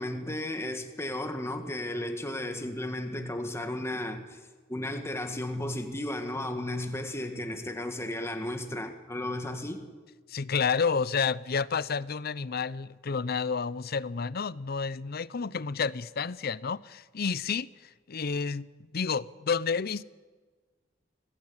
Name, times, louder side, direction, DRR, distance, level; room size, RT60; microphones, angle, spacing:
voice 1, 0.0-4.4 4.7-9.9, left 1 dB, 15° left, 2.1 m, -34 dB
voice 2, 10.3-17.7 18.1-18.7 18.9-20.0, left 5 dB, 55° left, 0.6 m, -30 dB
24.5 x 17.0 x 8.9 m
head